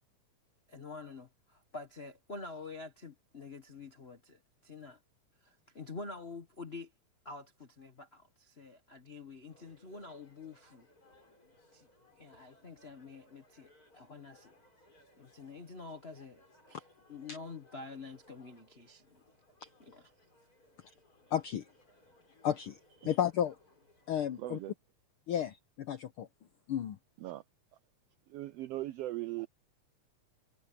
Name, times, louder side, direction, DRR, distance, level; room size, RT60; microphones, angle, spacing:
voice 1, 0.7-5.0 5.4-6.9 7.2-10.9 11.7-11.9 12.1-14.5 15.2-19.2 19.8-20.1, left 3 dB, 60° left, 0.6 m, -47 dB
sound 1, 9.5-24.7, left 1 dB, 30° left, 6.3 m, -65 dB
voice 2, 21.3-21.7 22.4-22.8 23.0-23.6 24.1-24.6 25.3-26.3 26.7-27.0, left 10 dB, 75° left, 1.2 m, -32 dB
voice 3, 24.4-24.7 27.2-27.4 28.3-29.5, right 16 dB, 85° right, 1.4 m, -39 dB
omnidirectional pair, 3.3 m